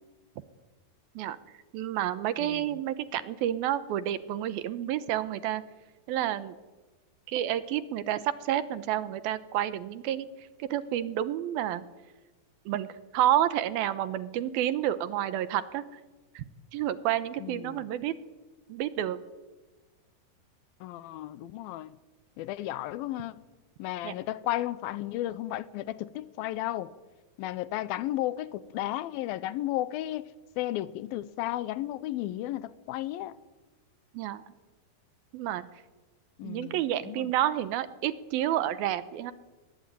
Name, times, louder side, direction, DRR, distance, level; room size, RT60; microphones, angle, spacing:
voice 1, 1.7-5.6 6.1-6.6 7.3-10.3 10.6-11.8 12.7-12.9 13.1-15.8 16.4-16.5 16.7-18.1 18.7-19.2 24.0-24.1 34.1-34.4 35.3-35.7 36.4-39.3, right 12 dB, 75° right, 2.7 m, -29 dB
voice 2, 2.4-2.8 17.4-17.9 20.8-22.0 22.4-23.4 23.8-26.9 27.4-30.3 30.6-33.4 36.4-37.3, left 14 dB, 75° left, 2.6 m, -34 dB
22.0 x 19.5 x 9.3 m
omnidirectional pair, 4.4 m